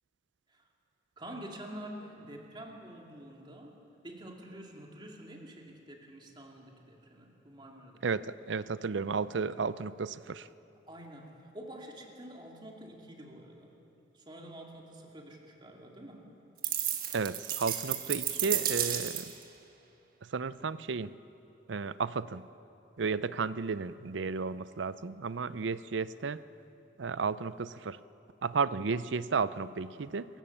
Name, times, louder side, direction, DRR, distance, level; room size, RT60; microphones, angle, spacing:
voice 1, 1.2-3.8 4.0-8.0 10.9-13.7 14.1-16.2, right 1 dB, 25° right, 0 dB, 2.4 m, -47 dB
voice 2, 8.0-10.5 17.1-19.3 20.3-21.1 21.7-22.4 23.0-26.4 27.0-28.0 28.4-30.3, right 5 dB, 75° right, 16 dB, 0.5 m, -33 dB
sound 1, 16.6-19.4, right 10 dB, 50° right, 1.5 m, -32 dB
26.5 x 15.5 x 7.2 m, 2.9 s
head